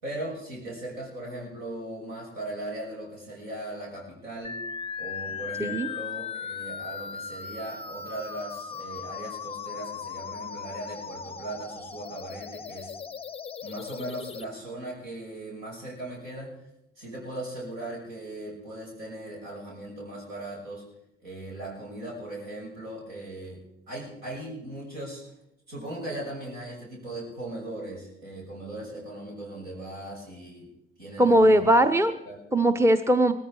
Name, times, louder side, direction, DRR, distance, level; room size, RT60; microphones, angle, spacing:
voice 1, 0.0-4.6 5.0-12.9 13.6-16.6 17.0-20.8 21.2-23.6 23.9-25.2 25.7-30.7 31.0-32.0 32.2-32.4, right 1 dB, 70° right, -3 dB, 6.2 m, -38 dB
sound 1, 4.4-14.4, left 6 dB, 20° left, 0.6 m, -38 dB
voice 2, 31.2-32.1 32.5-33.3, right 1 dB, 10° right, 10 dB, 0.9 m, -19 dB
18.5 x 14.5 x 4.7 m, 0.81 s
figure-of-eight pair, 45°, 29 cm